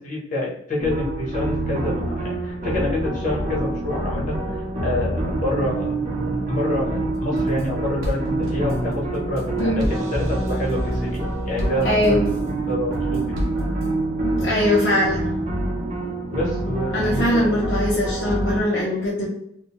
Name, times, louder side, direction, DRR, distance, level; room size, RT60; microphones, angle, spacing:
voice 1, 0.0-6.0 6.5-12.2 12.7-13.4 16.3-17.6, left 1 dB, 40° left, -4 dB, 0.9 m, -27 dB
sound 1, 0.8-18.6, right 2 dB, 35° right, 0.6 m, -26 dB
sound 2, 7.1-7.7 8.0-12.5 12.9-13.9, equal, 85° right, 0.7 m, -32 dB
voice 2, 11.8-12.2 14.2-15.2 16.9-19.3, left 1 dB, 55° left, -5 dB, 0.6 m, -21 dB
2.6 x 2.1 x 2.9 m, 0.73 s
head